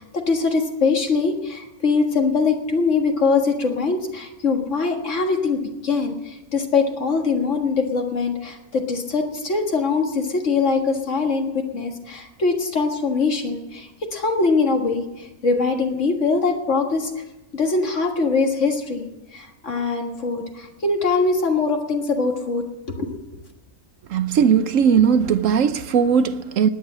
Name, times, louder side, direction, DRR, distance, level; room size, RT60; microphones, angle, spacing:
voice 1, 0.0-17.2 17.5-23.4, left 4 dB, 55° left, 2.0 m, -22 dB
voice 2, 24.1-26.7, right 7 dB, 70° right, 1.0 m, -18 dB
17.0 x 10.0 x 7.4 m
omnidirectional pair, 1.5 m